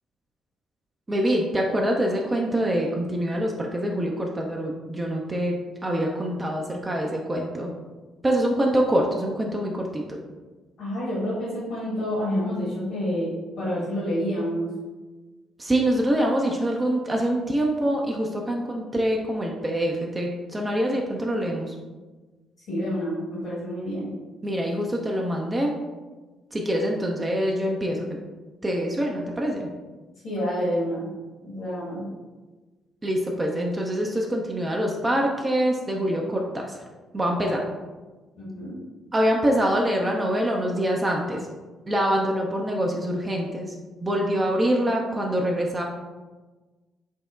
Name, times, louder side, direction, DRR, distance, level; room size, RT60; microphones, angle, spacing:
voice 1, 1.1-5.5 5.8-7.7 8.2-10.0 15.6-21.7 24.4-25.7 26.5-28.2 28.6-29.7 33.0-36.8 37.1-37.6 39.1-41.4 41.9-43.7 44.0-45.8, equal, 25° right, 0 dB, 0.4 m, -25 dB
voice 2, 10.8-13.3 13.6-14.7 22.7-24.1 30.2-31.1 31.4-32.0 38.4-38.8, equal, 60° left, -8 dB, 1.0 m, -28 dB
5.2 x 2.1 x 2.4 m, 1.3 s
figure-of-eight pair, 45°, 0 cm